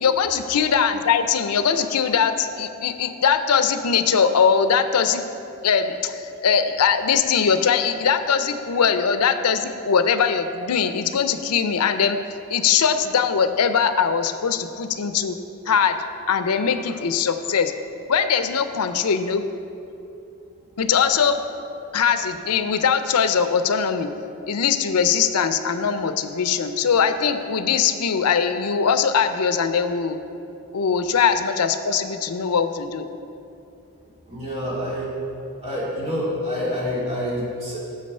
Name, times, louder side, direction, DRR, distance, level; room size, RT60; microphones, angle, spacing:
voice 1, 0.0-5.2 5.6-12.2 12.5-15.4 15.7-16.0 16.3-17.7 18.1-19.4 20.8-21.4 21.9-24.1 24.5-30.2 30.7-33.1, left 6 dB, 90° left, 10 dB, 0.5 m, -21 dB
voice 2, 34.3-35.1 35.6-37.8, left 1 dB, 30° right, -6 dB, 2.5 m, -27 dB
8.6 x 7.3 x 5.4 m, 2.7 s
head